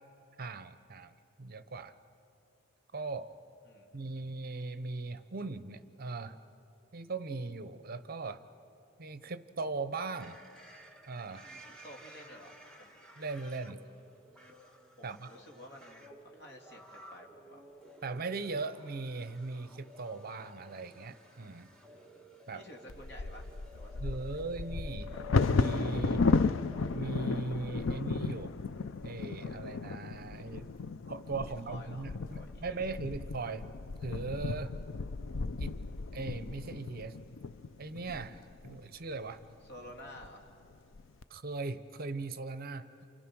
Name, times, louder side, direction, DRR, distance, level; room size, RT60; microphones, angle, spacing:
voice 1, 0.4-1.9 2.9-3.4 3.9-6.4 6.9-8.4 9.0-10.4 11.1-11.5 13.2-13.8 15.0-15.3 18.0-21.7 22.5-22.6 24.0-25.1 25.5-26.3 26.9-28.6 29.0-30.7 31.1-33.7 34.0-34.7 35.6-35.8 36.1-37.2 37.8-39.4 41.3-42.9, right 3 dB, 45° right, 12 dB, 0.8 m, -39 dB
voice 2, 3.6-4.3 11.4-13.0 15.0-17.6 21.9-24.4 31.7-32.9 39.6-40.5, left 1 dB, 55° left, 1 dB, 2.8 m, -52 dB
sound 1, 10.0-27.7, left 1 dB, 5° left, 1.5 m, -54 dB
Bird vocalization bird call bird song / Wind / Thunder, 22.9-38.8 39.4-39.5 39.9-40.3 40.7-41.2, left 4 dB, 70° left, 0.5 m, -34 dB
29.5 x 28.0 x 6.2 m, 2.8 s
head